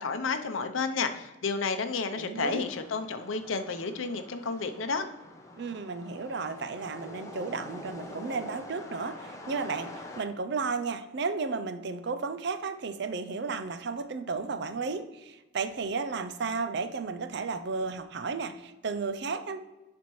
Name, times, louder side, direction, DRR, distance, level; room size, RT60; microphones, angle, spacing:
voice 1, 0.0-5.1, left 4 dB, 80° left, 8 dB, 0.6 m, -31 dB
voice 2, 2.1-2.6 5.6-19.6, right 4 dB, 55° right, 11 dB, 0.5 m, -33 dB
sound 1, 2.4-10.2, left 1 dB, 15° left, 0.7 m, -45 dB
11.0 x 4.3 x 3.1 m, 1.1 s
head